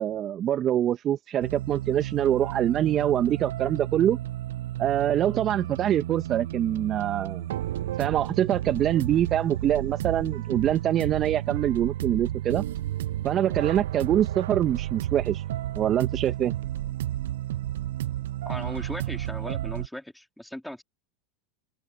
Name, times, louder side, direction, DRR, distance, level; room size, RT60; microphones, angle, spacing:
voice 1, 0.0-4.2 4.8-7.5 8.0-12.6 13.2-15.4 15.8-16.5, right 11 dB, 40° right, 1.8 m, -25 dB
sound 1, 1.4-19.9, right 13 dB, 75° right, 1.0 m, -32 dB
voice 2, 18.5-20.8, left 1 dB, 5° left, 3.4 m, -38 dB
hypercardioid pair, 90°, 0 cm